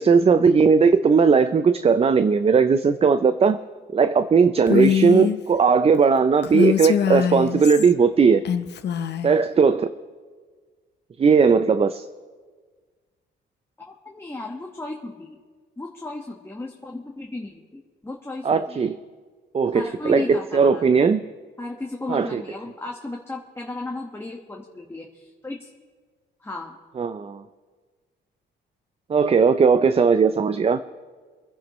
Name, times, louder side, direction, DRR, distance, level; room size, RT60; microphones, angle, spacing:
voice 1, 0.0-3.6 3.9-8.4 9.2-9.9 11.2-12.1 18.4-19.0 19.5-21.2 22.1-22.4 27.0-27.4 29.1-30.8, right 5 dB, 30° right, 11 dB, 0.5 m, -18 dB
Female speech woman speaking, 4.7-5.4 6.4-7.9 8.4-9.3, left 9 dB, 60° left, 0.8 m, -23 dB
voice 2, 13.9-15.4 15.8-18.8 19.7-21.0 21.6-25.7 26.4-26.8, left 2 dB, 10° left, 0 dB, 1.4 m, -35 dB
25.5 x 10.5 x 3.1 m, 1.5 s
cardioid pair, 90°, 20 cm